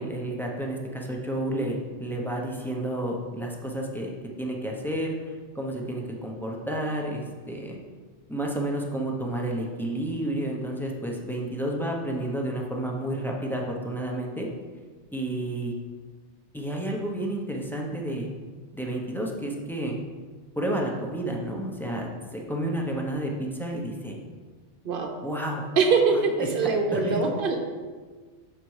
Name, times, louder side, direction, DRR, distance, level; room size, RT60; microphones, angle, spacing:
voice 1, 0.0-4.1 4.4-7.8 8.3-14.5 15.1-15.7 16.5-18.3 18.7-20.0 20.6-24.2 25.2-25.7 26.4-27.2, right 1 dB, ahead, -1 dB, 0.7 m, -31 dB
voice 2, 25.8-27.6, right 4 dB, 55° right, 2 dB, 1.0 m, -23 dB
6.7 x 4.4 x 4.8 m, 1.4 s
omnidirectional pair, 1.2 m